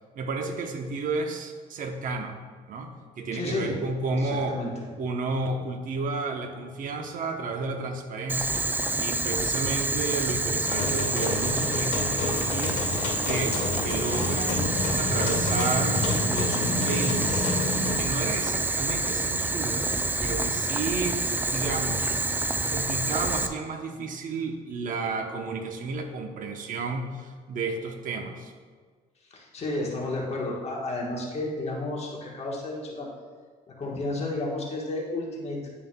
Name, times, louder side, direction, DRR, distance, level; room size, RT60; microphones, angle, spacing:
voice 1, 0.1-2.4 2.7-4.6 5.0-12.8 13.3-17.6 18.0-19.9 20.2-21.2 21.5-22.2 22.7-28.5, right 3 dB, 55° right, 4 dB, 0.8 m, -32 dB
voice 2, 3.3-3.8 4.1-4.7 29.3-33.1 33.8-35.6, left 2 dB, 40° left, -3 dB, 1.3 m, -32 dB
Boiling, 8.3-23.5, right 2 dB, 10° right, 0.3 m, -28 dB
sound 1, 10.7-18.0, left 3 dB, 65° left, 2.0 m, -29 dB
9.7 x 5.6 x 2.3 m, 1.5 s
cardioid pair, 110°, 17 cm